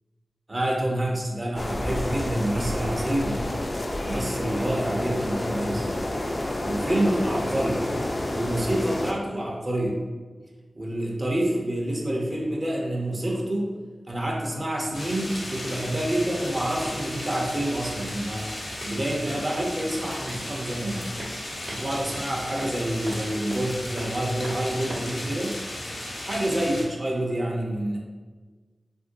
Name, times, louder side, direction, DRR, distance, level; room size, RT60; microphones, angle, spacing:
voice 1, 0.5-3.5 4.0-6.0 6.6-7.8 8.3-10.0 10.7-13.7 14.1-18.5 18.9-21.1 21.7-25.6 26.2-28.0, right 1 dB, 40° right, -2 dB, 0.6 m, -27 dB
sound 1, 1.6-9.1, left 1 dB, 40° left, 0.3 m, -29 dB
sound 2, 14.9-26.8, left 1 dB, 80° left, 0.8 m, -35 dB
sound 3, 16.1-25.2, right 1 dB, 70° right, 1.0 m, -43 dB
2.8 x 2.5 x 2.6 m, 1.4 s
cardioid pair, 50°, 0 cm